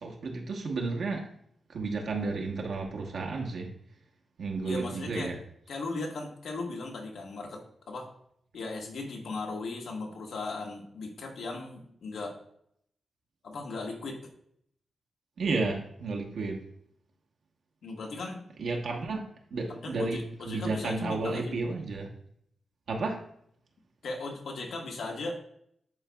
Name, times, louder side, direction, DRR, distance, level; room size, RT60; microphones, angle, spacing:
voice 1, 0.0-1.2 1.7-3.7 4.4-5.3 15.4-16.6 18.6-19.2 19.5-22.1 22.9-23.2, right 3 dB, 70° right, 0 dB, 1.1 m, -32 dB
voice 2, 4.6-5.3 5.7-8.1 8.5-12.4 13.4-14.2 17.8-18.4 19.7-21.5 24.0-25.4, left 3 dB, 80° left, 0 dB, 1.4 m, -37 dB
11.0 x 4.0 x 2.3 m, 0.69 s
wide cardioid pair, 140°, 0 cm